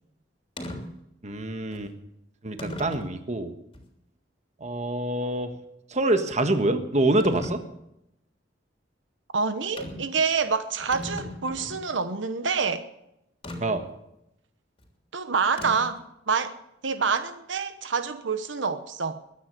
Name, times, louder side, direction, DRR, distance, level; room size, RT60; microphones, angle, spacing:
sound 1, 0.6-0.8 1.7-1.8 2.6-3.1 3.7-3.8 7.2-7.6 9.8-10.1 10.5-10.6 10.8-11.9 13.4-13.6 15.6-16.0, left 1 dB, 30° left, 3.2 m, -36 dB
voice 1, 1.2-1.9 2.4-3.5 4.6-5.5 5.9-7.6 13.6-13.8, right 2 dB, 40° right, 8 dB, 1.4 m, -25 dB
voice 2, 9.3-12.8 15.1-16.0 16.3-16.6 16.8-19.2, right 5 dB, 85° right, 10 dB, 1.0 m, -27 dB
22.0 x 9.5 x 6.8 m, 0.83 s
head